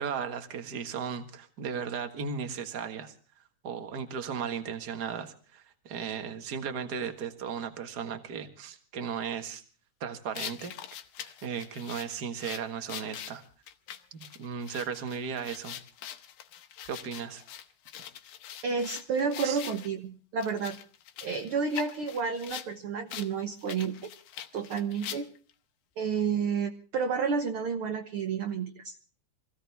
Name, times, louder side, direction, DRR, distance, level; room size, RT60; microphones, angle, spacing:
voice 1, 0.0-3.1 3.6-9.6 10.0-10.7 11.2-13.4 14.1-15.8 16.8-17.4 19.4-19.6, right 6 dB, 40° right, 8 dB, 1.6 m, -36 dB
sound 1, 10.3-19.9 20.4-22.7 23.1-23.3 23.6-25.5, left 10 dB, 80° left, 2.6 m, -43 dB
voice 2, 18.6-20.8 21.2-24.1 24.5-25.3 26.0-28.9, right 5 dB, 60° right, 6 dB, 1.5 m, -30 dB
25.5 x 16.0 x 3.5 m, 0.38 s
omnidirectional pair, 3.7 m